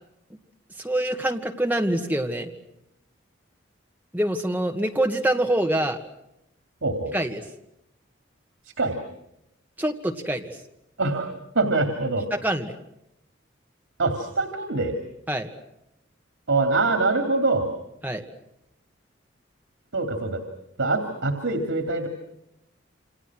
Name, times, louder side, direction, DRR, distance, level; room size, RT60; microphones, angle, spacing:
voice 1, 0.8-2.5 4.1-6.0 7.1-7.4 9.8-10.6 12.3-12.7 15.3-15.5 18.0-18.2, right 1 dB, 10° right, 3 dB, 2.1 m, -25 dB
voice 2, 6.8-7.1 8.8-9.0 11.0-12.2 14.0-14.9 16.5-17.7 19.9-20.4 20.8-22.1, right 3 dB, 90° right, 6 dB, 3.0 m, -24 dB
29.0 x 27.0 x 6.4 m, 0.83 s
head